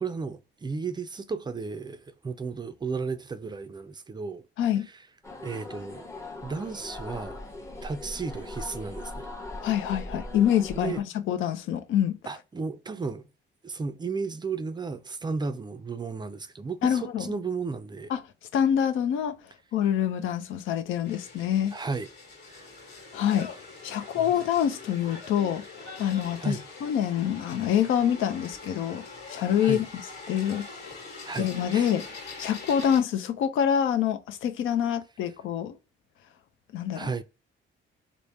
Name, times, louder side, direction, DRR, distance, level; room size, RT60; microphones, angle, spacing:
voice 1, 0.0-4.4 4.9-5.0 5.4-6.1 6.4-7.4 7.8-9.3 10.7-11.0 12.3-13.3 13.6-18.1 21.7-22.1 22.5-22.7 23.0-23.1 24.0-24.3 26.4-26.6 29.6-29.9 31.2-31.9 36.9-37.2, right 4 dB, 20° right, 0.4 m, -34 dB
sound 1, 5.2-11.0, left 2 dB, 15° left, 0.8 m, -40 dB
voice 2, 9.6-12.2 16.8-17.3 18.1-18.2 18.5-19.4 19.7-21.7 23.1-23.5 23.8-26.6 26.8-29.8 30.3-30.7 31.4-32.0 32.4-35.8 36.7-37.1, left 9 dB, 80° left, 0.5 m, -26 dB
sound 2, 21.0-33.0, left 3 dB, 55° left, 1.4 m, -43 dB
3.4 x 2.0 x 4.0 m
cardioid pair, 90°, 20 cm